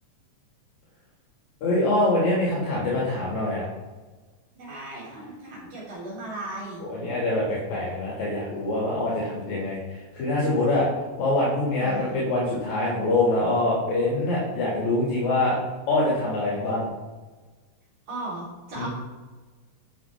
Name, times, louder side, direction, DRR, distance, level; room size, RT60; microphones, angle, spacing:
voice 1, 1.6-3.6 6.9-10.9 11.2-15.5 15.9-16.9 18.8-18.9, left 2 dB, 70° left, -6 dB, 3.5 m, -24 dB
voice 2, 4.5-6.8 11.8-12.2 18.1-18.9, right 2 dB, 65° right, -6 dB, 5.1 m, -36 dB
13.0 x 7.4 x 3.5 m, 1.3 s
omnidirectional pair, 3.5 m